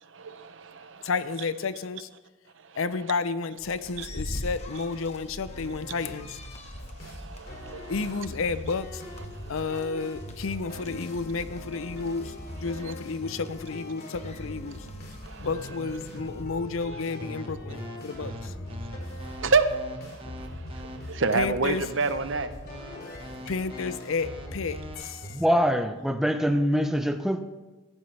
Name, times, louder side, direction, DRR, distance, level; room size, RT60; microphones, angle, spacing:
voice 1, 0.0-1.1 2.6-2.8 4.0-4.1 6.7-7.9 9.3-9.8 10.7-10.8 12.8-12.9 15.2-15.5 16.9-17.0 18.8-22.5, right 4 dB, 60° right, 0.8 m, -30 dB
voice 2, 1.0-2.1 2.8-6.4 7.9-9.0 9.5-14.8 15.4-18.5 21.3-21.9 23.5-24.8, left 4 dB, 75° left, 0.6 m, -31 dB
sound 1, 3.6-16.4, left 1 dB, 30° left, 1.2 m, -44 dB
sound 2, 5.4-25.3, left 1 dB, 45° left, 2.6 m, -41 dB
sound 3, 17.2-24.9, equal, 25° right, 1.1 m, -42 dB
voice 3, 25.3-27.4, equal, ahead, 0.6 m, -24 dB
15.0 x 14.0 x 3.4 m
head